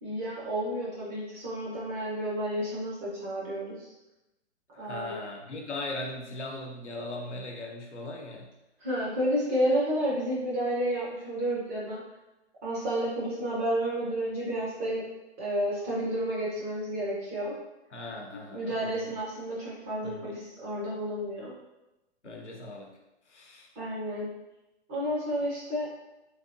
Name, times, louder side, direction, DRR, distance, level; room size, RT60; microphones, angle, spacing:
voice 1, 0.0-3.9 4.8-5.1 8.8-12.0 12.6-15.0 15.4-17.6 18.5-21.5 23.8-24.3 24.9-25.9, right 1 dB, 15° right, -6 dB, 0.4 m, -31 dB
voice 2, 4.7-8.5 17.9-19.1 20.0-20.4 22.2-22.9 23.3-23.7, left 2 dB, 85° left, 0 dB, 0.8 m, -39 dB
3.3 x 2.8 x 2.6 m, 0.98 s
figure-of-eight pair, 125°, 34 cm